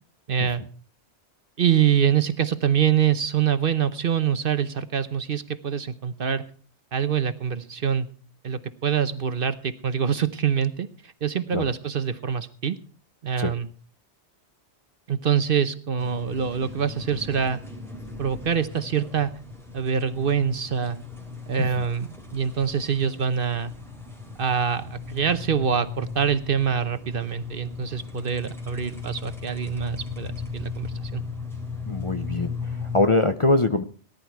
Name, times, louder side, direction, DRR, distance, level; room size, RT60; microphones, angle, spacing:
voice 1, 0.3-0.6 1.6-6.4 6.9-8.1 8.4-12.8 13.2-13.7 15.1-17.6 18.2-19.3 19.7-21.0 21.5-23.7 24.4-31.2, right 8 dB, 55° right, 12 dB, 1.0 m, -25 dB
sound 1, 16.0-33.1, left 5 dB, ahead, 3.6 m, -37 dB
voice 2, 31.9-33.8, left 2 dB, 30° left, 8 dB, 0.7 m, -23 dB
18.5 x 11.0 x 4.6 m, 0.43 s
omnidirectional pair, 1.2 m